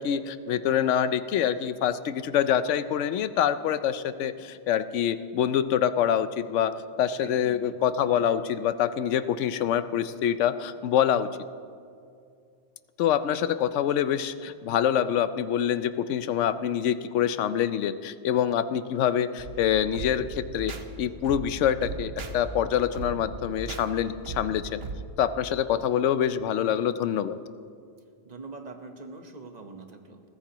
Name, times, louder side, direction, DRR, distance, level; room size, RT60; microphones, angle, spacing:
voice 1, 0.0-11.3 13.0-24.8 25.2-27.4, left 9 dB, 85° left, 12 dB, 0.9 m, -26 dB
voice 2, 7.2-7.7 28.2-30.2, right 3 dB, 35° right, 5 dB, 1.1 m, -43 dB
sound 1, 19.4-25.0, right 3 dB, 60° right, 1.1 m, -38 dB
22.0 x 15.0 x 3.0 m, 2.3 s
omnidirectional pair, 1.2 m